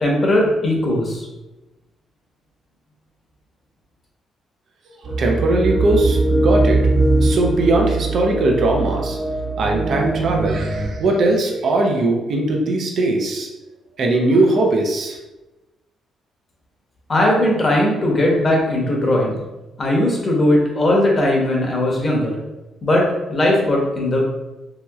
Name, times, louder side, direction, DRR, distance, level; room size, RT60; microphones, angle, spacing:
voice 1, 0.0-1.3 17.1-19.4 19.8-22.4 22.8-24.2, left 1 dB, 35° left, -1 dB, 0.9 m, -18 dB
sound 1, 5.0-10.9, right 2 dB, 45° right, 1.3 m, -20 dB
voice 2, 5.2-6.8 7.2-9.2 9.6-13.5 14.0-15.2, right 2 dB, 60° right, 0 dB, 0.5 m, -19 dB
3.0 x 2.9 x 2.3 m, 1.0 s
cardioid pair, 90°, 0 cm